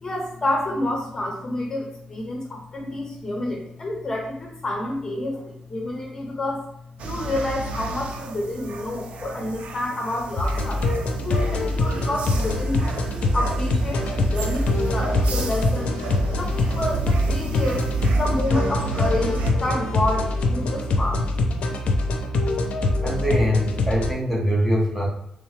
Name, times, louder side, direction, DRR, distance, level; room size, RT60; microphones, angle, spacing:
voice 1, 0.0-6.6 7.0-10.9 11.2-13.0 13.3-15.9 16.3-21.2, left 1 dB, 30° left, 0 dB, 0.9 m, -29 dB
sound 1, 7.0-19.5, right 3 dB, 75° right, 0.5 m, -31 dB
sound 2, 10.4-24.1, left 2 dB, 80° left, 0.5 m, -24 dB
voice 2, 23.0-25.1, equal, 5° right, -3 dB, 0.9 m, -23 dB
3.5 x 3.0 x 3.3 m, 0.75 s
wide cardioid pair, 130°, 2 cm